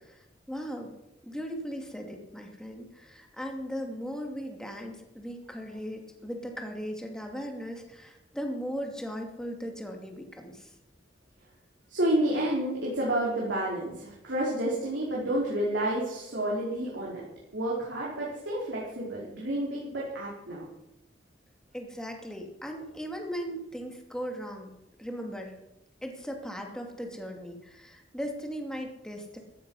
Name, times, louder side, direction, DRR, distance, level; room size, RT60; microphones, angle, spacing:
voice 1, 0.0-0.9 1.2-10.7 21.7-24.7 25.0-25.5 26.0-29.4, equal, 5° left, 2 dB, 2.6 m, -38 dB
voice 2, 11.9-17.2 17.5-20.6, right 1 dB, 70° right, -5 dB, 4.5 m, -30 dB
15.5 x 14.0 x 5.6 m, 0.91 s
head